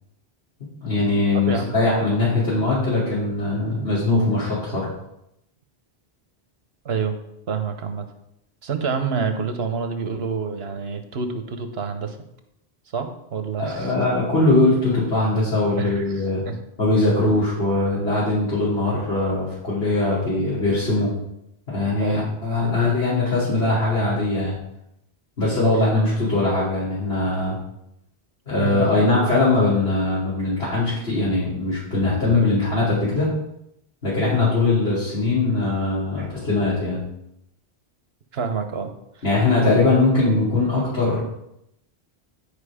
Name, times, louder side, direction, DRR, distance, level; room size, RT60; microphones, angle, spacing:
voice 1, 0.8-4.9 13.6-16.4 16.8-21.1 21.7-24.5 25.4-27.6 28.5-33.3 34.0-37.1 39.2-41.2, left 2 dB, 80° left, -10 dB, 3.4 m, -21 dB
voice 2, 6.8-7.2 7.5-8.0 8.6-12.2 12.9-13.9 15.8-16.6 22.0-22.3 28.6-28.8 36.2-36.3 38.3-39.2, right 5 dB, 75° right, 7 dB, 1.2 m, -27 dB
10.5 x 5.0 x 4.9 m, 0.81 s
omnidirectional pair, 1.1 m